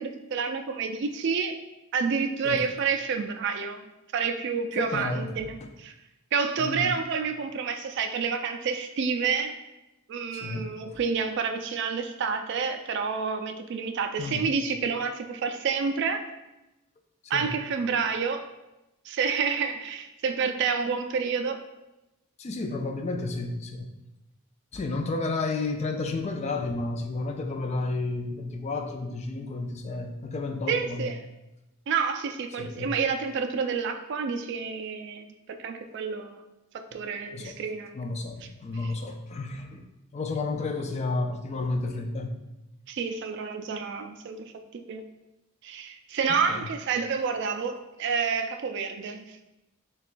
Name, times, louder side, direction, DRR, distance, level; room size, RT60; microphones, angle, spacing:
voice 1, 0.0-1.5 1.9-3.8 4.1-5.9 6.3-9.5 10.1-16.2 17.3-18.5 19.1-21.6 30.7-31.2 31.9-36.4 36.7-38.0 38.8-38.9 42.9-45.0 45.6-49.2, right 5 dB, 55° right, 7 dB, 0.3 m, -29 dB
voice 2, 4.8-5.3 6.6-6.9 10.3-11.0 14.2-14.5 17.3-17.5 22.4-23.9 24.7-31.1 32.6-33.0 37.3-37.6 37.9-39.9 40.1-42.3 46.3-46.7, left 3 dB, 30° left, 4 dB, 0.3 m, -31 dB
6.6 x 2.3 x 2.5 m, 0.96 s
head